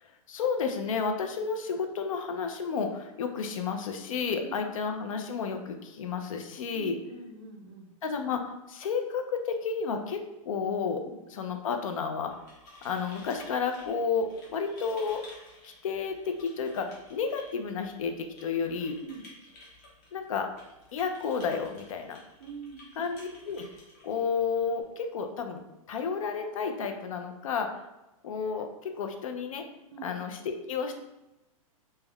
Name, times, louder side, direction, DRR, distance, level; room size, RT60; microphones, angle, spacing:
voice 1, 0.0-6.9 8.0-11.0 11.3-12.3 12.8-15.2 15.6-19.0 20.1-20.5 20.9-22.2 23.0-23.7 24.0-25.6 25.9-27.8 28.2-29.6 30.0-30.4 30.7-30.9, left 5 dB, 65° left, 5 dB, 0.4 m, -31 dB
voice 2, 4.3-4.7 6.7-7.9 11.0-11.2 19.0-19.3 22.4-23.0 29.9-30.2, right 5 dB, 45° right, 4 dB, 0.4 m, -44 dB
sound 1, 12.1-24.8, left 2 dB, 30° left, 0.7 m, -53 dB
3.3 x 2.1 x 2.3 m, 0.96 s
supercardioid pair, 175°, 18 cm